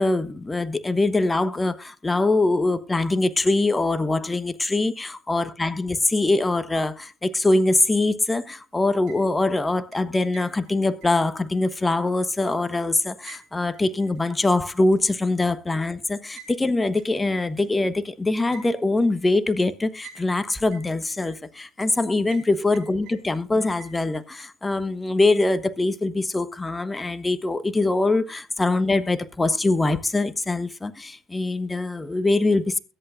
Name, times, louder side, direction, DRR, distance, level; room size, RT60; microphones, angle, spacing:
voice 1, 0.0-32.8, left 2 dB, 15° left, 1.1 m, -23 dB
sound 1, 8.9-9.5 9.9-12.8 13.3-14.5 14.9-15.0 16.4-16.6 17.0-17.1 17.6-17.7 18.5-19.1 20.0-20.4 20.7-21.6 22.3-22.5 22.7-23.5 23.8-24.5, right 7 dB, 65° right, 5.4 m, -48 dB
22.0 x 8.2 x 2.5 m
hypercardioid pair, 65°, 0 cm